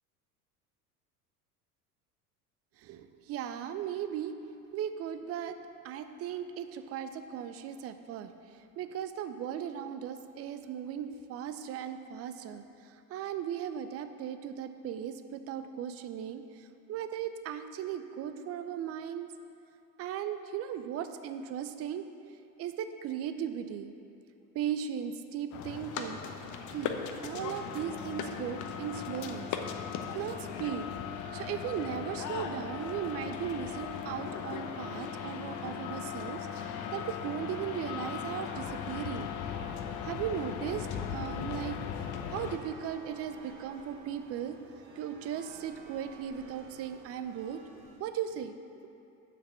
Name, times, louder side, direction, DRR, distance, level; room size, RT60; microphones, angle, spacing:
voice 1, 2.8-4.3 4.7-5.6 5.8-19.3 20.0-22.1 22.6-23.9 24.5-26.2 26.7-26.9 27.2-29.5 30.1-30.9 31.3-39.3 40.0-41.8 42.3-44.6 45.0-47.6 48.0-48.6, right 9 dB, 30° right, 10 dB, 0.5 m, -37 dB
sound 1, 25.5-42.6, left 7 dB, 40° left, 0.8 m, -38 dB
sound 2, 42.4-48.0, right 2 dB, 50° right, 1.5 m, -52 dB
7.4 x 5.8 x 6.8 m, 2.6 s
hypercardioid pair, 80°, 46 cm